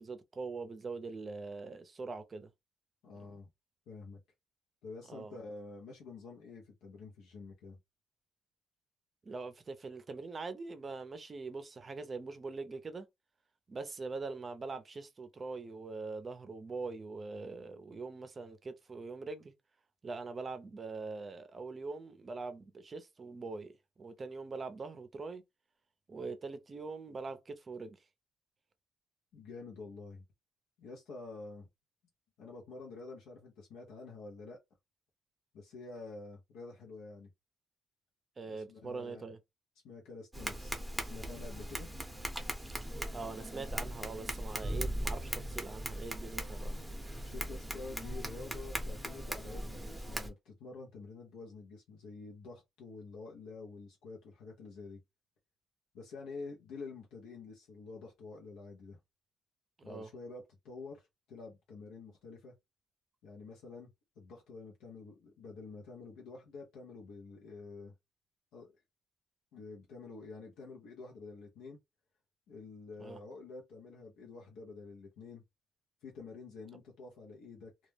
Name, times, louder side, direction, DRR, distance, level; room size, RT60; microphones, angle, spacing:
voice 1, 0.0-2.5 3.2-3.4 5.1-5.4 9.2-13.1 13.7-19.5 20.0-23.7 24.0-25.4 26.1-28.0 38.4-39.4 43.1-46.8 59.8-60.1 73.0-73.2, right 4 dB, 35° right, 0.5 m, -43 dB
voice 2, 3.0-3.5 3.9-4.2 4.8-7.8 29.3-30.2 30.8-31.7 32.4-34.6 35.5-37.3 38.5-39.3 39.8-41.9 47.2-55.0 55.9-59.0 59.8-62.5 63.2-63.9 64.2-67.9 68.5-68.7 69.5-71.8 72.5-75.4 76.0-77.7, left 3 dB, 90° left, 0.6 m, -48 dB
Tap, 40.3-50.3, right 1 dB, 5° right, 0.7 m, -39 dB
2.2 x 2.1 x 3.2 m
cardioid pair, 90°, 0 cm